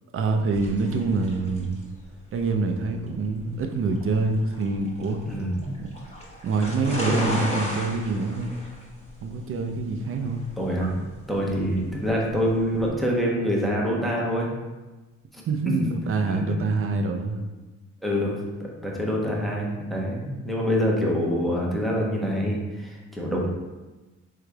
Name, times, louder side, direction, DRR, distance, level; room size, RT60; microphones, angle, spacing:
voice 1, 0.1-1.8 2.3-5.2 5.8-5.9 6.4-8.6 9.2-10.4 15.5-17.5, right 3 dB, 45° right, 4 dB, 0.5 m, -26 dB
sound 1, 0.5-12.9, equal, 20° left, 1.1 m, -35 dB
voice 2, 5.3-5.7 10.6-11.0 11.3-14.5 15.3-15.4 16.3-16.4 18.0-23.5, equal, ahead, -3 dB, 0.8 m, -26 dB
3.7 x 3.3 x 2.2 m, 1.2 s
cardioid pair, 90°, 30 cm